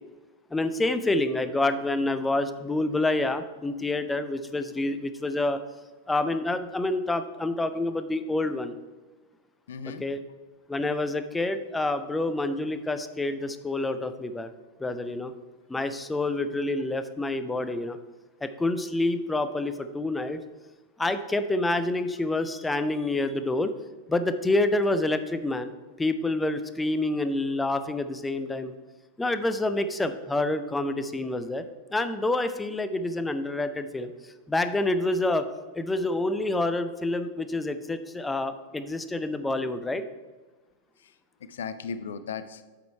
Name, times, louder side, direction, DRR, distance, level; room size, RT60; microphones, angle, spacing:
voice 1, 0.5-5.6 6.1-8.7 10.0-10.2 10.7-14.5 14.8-15.3 15.7-18.0 18.4-20.4 21.0-23.7 24.1-25.7 26.0-28.7 29.2-35.5 35.7-40.0, left 2 dB, 10° left, 10 dB, 0.5 m, -27 dB
voice 2, 9.7-10.1 41.0-42.6, left 6 dB, 60° left, 12 dB, 0.5 m, -37 dB
7.7 x 5.1 x 4.5 m, 1.3 s
figure-of-eight pair, 90°, 0 cm